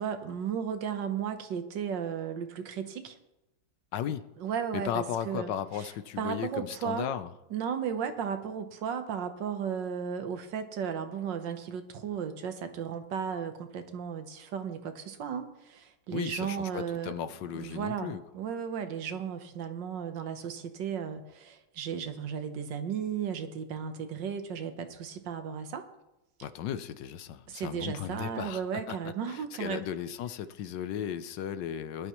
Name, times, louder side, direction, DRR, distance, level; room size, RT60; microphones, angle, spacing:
voice 1, 0.0-3.2 4.4-5.9 6.2-7.1 7.5-17.1 17.5-25.9 27.5-29.8, right 7 dB, 75° right, 8 dB, 1.7 m, -35 dB
voice 2, 3.9-4.2 4.7-7.3 16.1-18.2 26.4-32.1, left 9 dB, 75° left, 13 dB, 1.3 m, -36 dB
18.5 x 11.5 x 3.1 m, 0.94 s
omnidirectional pair, 2.0 m